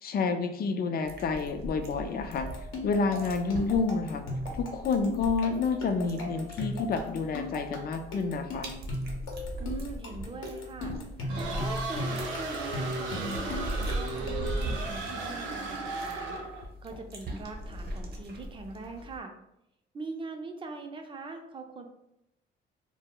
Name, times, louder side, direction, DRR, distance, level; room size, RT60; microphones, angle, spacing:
voice 1, 0.0-2.5 2.8-4.2 4.6-8.7, left 4 dB, 50° left, 8 dB, 0.4 m, -29 dB
sound 1, 1.0-19.2, right 1 dB, 55° right, 0.8 m, -40 dB
sound 2, 2.4-14.7, left 2 dB, 85° left, 0.7 m, -38 dB
voice 2, 9.6-10.9 11.4-16.4 16.8-19.3 19.9-21.8, right 3 dB, 25° right, 4 dB, 0.4 m, -42 dB
sound 3, 11.3-16.7, right 3 dB, 90° right, 0.5 m, -35 dB
2.1 x 2.0 x 3.7 m, 0.83 s
cardioid pair, 90°, 20 cm